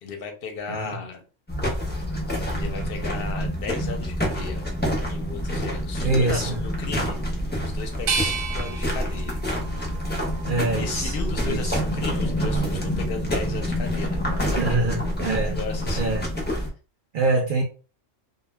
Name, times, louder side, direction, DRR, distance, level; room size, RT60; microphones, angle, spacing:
voice 1, 0.0-1.2 2.5-4.7 5.1-9.4 10.8-15.0 15.4-16.2 17.3-17.4, left 5 dB, 60° left, 5 dB, 0.7 m, -36 dB
sound 1, 1.5-16.7, equal, 15° left, 0.4 m, -27 dB
voice 2, 6.0-6.6 10.4-11.2 11.4-11.8 14.4-15.6 16.0-16.2 17.1-17.6, right 3 dB, 60° right, 2 dB, 0.5 m, -24 dB
sound 2, 8.1-11.0 11.5-12.4, right 5 dB, 85° right, 1.0 m, -33 dB
2.2 x 2.2 x 3.2 m, 0.36 s
omnidirectional pair, 1.3 m